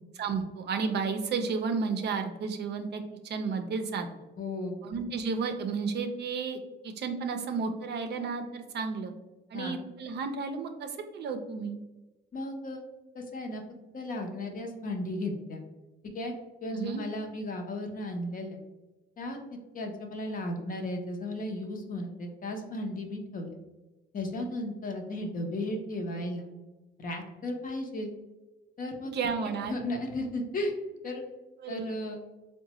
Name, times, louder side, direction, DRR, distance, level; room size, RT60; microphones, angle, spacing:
voice 1, 0.2-4.1 4.8-9.1 9.5-11.8 16.7-17.0 29.1-29.7 31.6-32.0, right 5 dB, 60° right, 6 dB, 0.5 m, -32 dB
voice 2, 4.4-4.8 9.5-9.7 12.3-12.8 13.1-13.6 13.9-15.6 16.1-16.3 16.6-18.6 19.2-19.4 19.7-23.6 24.1-26.5 27.0-28.1 28.8-29.1 29.6-30.7 31.0-31.2 31.7-32.2, left 1 dB, 45° left, 3 dB, 0.7 m, -35 dB
3.7 x 2.2 x 2.9 m, 1.1 s
cardioid pair, 90°, 20 cm